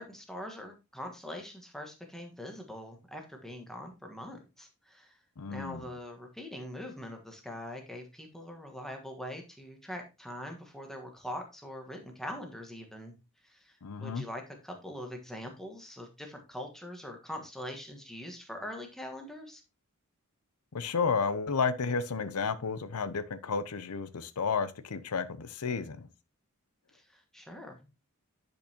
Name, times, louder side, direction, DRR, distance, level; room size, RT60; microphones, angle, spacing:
voice 1, 0.0-5.2 5.5-13.1 13.4-13.7 14.0-19.6 26.9-27.9, left 1 dB, ahead, 1.4 m, -43 dB
voice 2, 5.4-5.8 13.8-14.2 20.7-26.1, left 5 dB, 85° left, 0.6 m, -32 dB
10.5 x 5.3 x 2.8 m
head